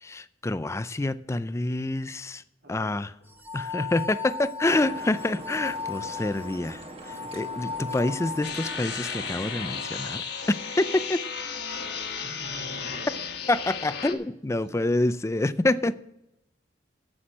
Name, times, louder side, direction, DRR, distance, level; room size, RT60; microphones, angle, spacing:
voice 1, 0.0-2.4 2.7-3.1 3.5-11.2 13.5-15.9, left 2 dB, 15° left, 0.4 m, -27 dB
voice 2, 2.6-3.0 12.2-13.2 14.5-15.0, right 1 dB, 75° right, 3.2 m, -45 dB
Tono Corto Agudo, 3.3-9.1, left 5 dB, 10° right, 1.0 m, -36 dB
sound 1, 4.7-9.8, right 1 dB, 30° right, 1.1 m, -43 dB
sound 2, 8.4-14.1, left 6 dB, 60° left, 1.3 m, -34 dB
9.8 x 7.8 x 6.4 m
head